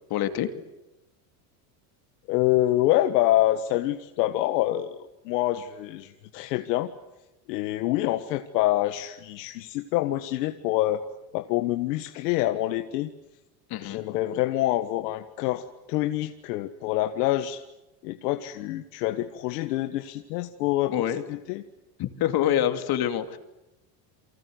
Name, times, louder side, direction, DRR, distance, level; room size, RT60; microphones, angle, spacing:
voice 1, 0.1-0.5 13.7-14.0 20.9-21.2 22.0-23.4, left 11 dB, 50° left, 7 dB, 2.8 m, -26 dB
voice 2, 2.3-6.9 7.5-11.0 11.3-13.1 13.8-17.6 18.0-21.6, left 15 dB, 80° left, 7 dB, 1.6 m, -26 dB
29.5 x 24.0 x 8.0 m, 0.96 s
supercardioid pair, 115°, 48 cm